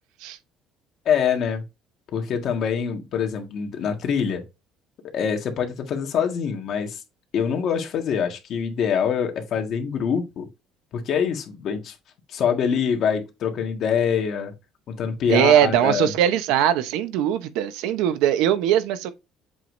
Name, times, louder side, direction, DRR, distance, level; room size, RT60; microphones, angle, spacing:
voice 1, 1.0-1.6 2.1-4.4 5.1-7.0 7.3-10.5 10.9-11.9 12.3-14.5 14.9-16.1, left 7 dB, 50° left, 1.8 m, -24 dB
voice 2, 15.3-19.1, right 10 dB, 85° right, 0.9 m, -20 dB
7.6 x 4.7 x 2.7 m
cardioid pair, 135°, 0 cm